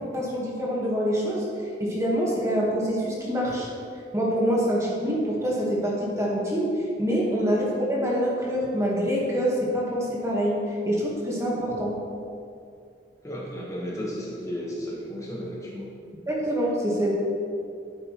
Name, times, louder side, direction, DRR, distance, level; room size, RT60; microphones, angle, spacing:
voice 1, 0.1-1.5 1.8-3.7 4.1-11.9 16.3-17.1, equal, 15° right, -4 dB, 1.3 m, -25 dB
voice 2, 13.2-15.9, equal, 20° left, -4 dB, 1.2 m, -34 dB
9.6 x 7.8 x 3.0 m, 2.4 s
head